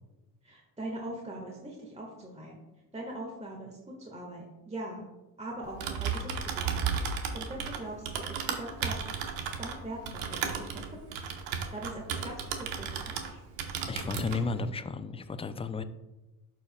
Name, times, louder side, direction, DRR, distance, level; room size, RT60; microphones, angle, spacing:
voice 1, 0.4-2.6 2.9-5.1 5.4-9.0 9.6-10.8 11.1-13.4, right 1 dB, 15° right, -1 dB, 1.5 m, -42 dB
Typing, 5.6-13.3 13.6-14.4, right 6 dB, 70° right, 1.0 m, -34 dB
voice 2, 13.9-15.8, left 4 dB, 15° left, 11 dB, 0.4 m, -33 dB
11.5 x 4.6 x 2.2 m, 1.0 s
hypercardioid pair, 55°, 46 cm